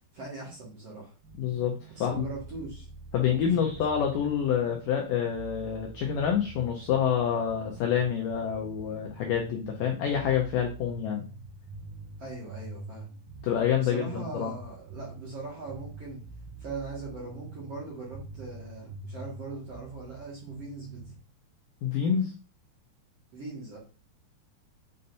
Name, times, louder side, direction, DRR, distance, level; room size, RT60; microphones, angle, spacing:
voice 1, 0.1-1.1 2.0-2.9 3.1-3.5 12.2-13.1 13.8-16.2 16.6-21.0 23.3-23.8, right 3 dB, 50° right, -4 dB, 2.1 m, -40 dB
sound 1, 1.2-21.2, right 3 dB, 65° right, 3.8 m, -46 dB
voice 2, 1.4-2.2 3.1-11.2 13.4-14.5 21.8-22.3, left 8 dB, 80° left, 2 dB, 2.0 m, -27 dB
8.1 x 5.5 x 2.6 m, 0.33 s
omnidirectional pair, 5.0 m